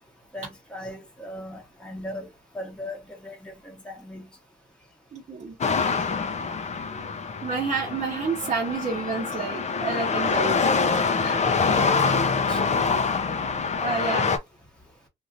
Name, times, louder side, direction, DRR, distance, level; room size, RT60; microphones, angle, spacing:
voice 1, 0.3-2.3 2.5-4.3 11.2-12.2 12.5-12.6, left 1 dB, 5° left, 1.1 m, -38 dB
voice 2, 5.1-5.6 6.9-7.0 7.4-10.6 11.2-11.4 13.8-14.3, right 4 dB, 35° right, 0.9 m, -29 dB
sound 1, 5.6-14.4, left 5 dB, 35° left, 0.6 m, -25 dB
3.1 x 2.6 x 2.6 m
cardioid pair, 90°, 20 cm